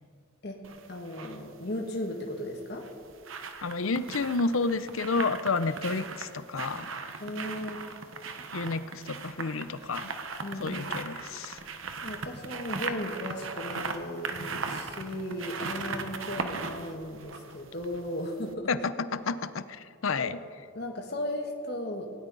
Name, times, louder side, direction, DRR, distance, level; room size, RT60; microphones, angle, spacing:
sound 1, 0.6-1.4 2.6-18.2 18.5-18.6, right 4 dB, 80° right, 1.2 m, -38 dB
voice 1, 0.9-2.9 7.2-7.8 10.4-11.0 12.0-18.7 20.2-20.3 20.7-22.1, left 1 dB, 50° left, 2 dB, 1.5 m, -36 dB
voice 2, 3.6-6.9 8.5-10.1 10.6-11.6 18.7-20.4, left 4 dB, 85° left, 13 dB, 0.7 m, -30 dB
19.0 x 17.5 x 4.1 m, 2.3 s
head